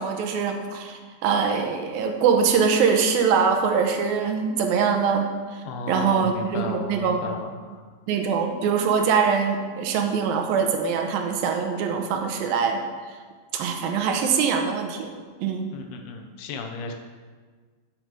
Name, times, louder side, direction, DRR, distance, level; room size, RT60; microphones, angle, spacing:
voice 1, 0.0-5.6 5.9-7.4 8.1-12.8 13.5-15.1 15.4-15.7, right 6 dB, 75° right, 4 dB, 2.5 m, -23 dB
voice 2, 5.6-7.8 15.7-16.9, left 4 dB, 80° left, 4 dB, 2.9 m, -34 dB
8.0 x 7.7 x 6.5 m, 1.5 s
omnidirectional pair, 4.5 m